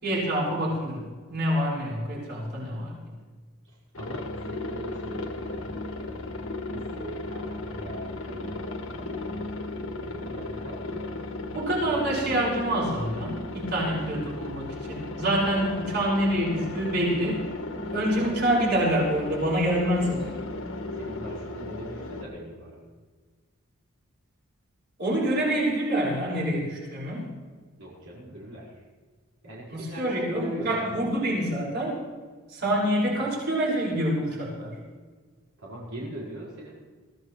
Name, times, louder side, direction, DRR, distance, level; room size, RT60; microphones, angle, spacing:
voice 1, 0.0-3.0 11.5-17.4 17.8-20.3 25.0-27.3 29.7-32.0 32.5-34.8, right 1 dB, 50° right, -5 dB, 6.1 m, -26 dB
voice 2, 3.6-6.3 6.7-11.3 15.4-15.8 20.9-22.9 27.8-28.9 29.4-31.0 35.6-36.8, right 1 dB, 75° right, -6 dB, 5.2 m, -41 dB
Aircraft, 3.9-22.2, left 2 dB, 65° left, 1.6 m, -35 dB
23.5 x 15.5 x 3.3 m, 1.5 s
head